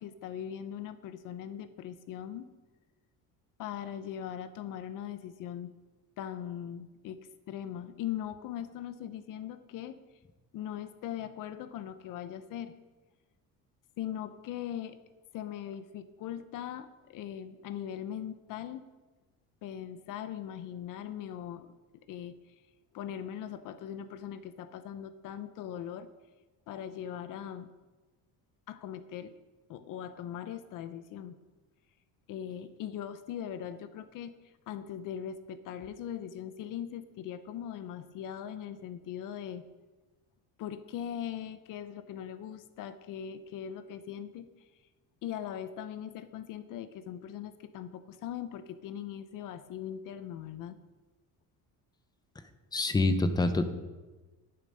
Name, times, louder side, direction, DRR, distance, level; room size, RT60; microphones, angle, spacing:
voice 1, 0.0-2.5 3.6-5.7 6.2-7.2 7.5-10.0 10.5-12.8 14.0-15.0 15.3-18.9 19.6-21.7 22.1-22.5 22.9-26.1 26.7-27.7 28.7-29.3 29.7-31.4 32.3-34.3 34.7-39.6 40.6-44.5 45.2-50.8, left 10 dB, 55° left, 12 dB, 0.7 m, -40 dB
voice 2, 52.7-53.6, left 2 dB, 10° left, 9 dB, 0.6 m, -26 dB
11.0 x 11.0 x 5.4 m, 1.2 s
cardioid pair, 175°, 37 cm